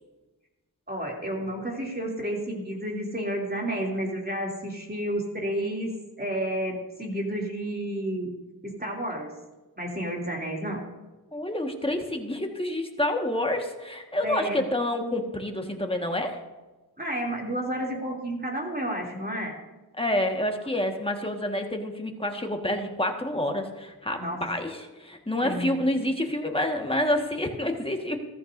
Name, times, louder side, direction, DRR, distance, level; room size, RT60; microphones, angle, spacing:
voice 1, 0.9-5.9 6.2-8.3 8.6-9.3 9.8-10.8 14.2-14.6 17.0-19.5 24.2-24.4 25.4-25.8, right 1 dB, 25° right, -1 dB, 2.9 m, -31 dB
voice 2, 11.3-16.4 20.0-28.2, left 1 dB, 15° left, 3 dB, 1.6 m, -28 dB
14.5 x 14.0 x 2.7 m, 1.2 s
wide cardioid pair, 45°, 38 cm